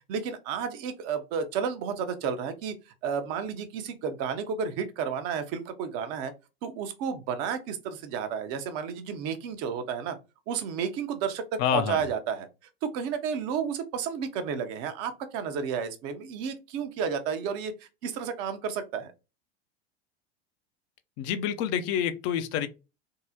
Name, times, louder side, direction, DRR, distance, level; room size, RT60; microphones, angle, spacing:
voice 1, 0.1-2.7 3.0-6.3 6.6-10.2 10.5-12.5 12.8-17.7 18.0-19.1, right 7 dB, 50° right, 0.7 m, -32 dB
voice 2, 11.6-12.0 21.2-22.7, left 9 dB, 45° left, 0.5 m, -27 dB
3.6 x 2.0 x 2.7 m
hypercardioid pair, 95°, 32 cm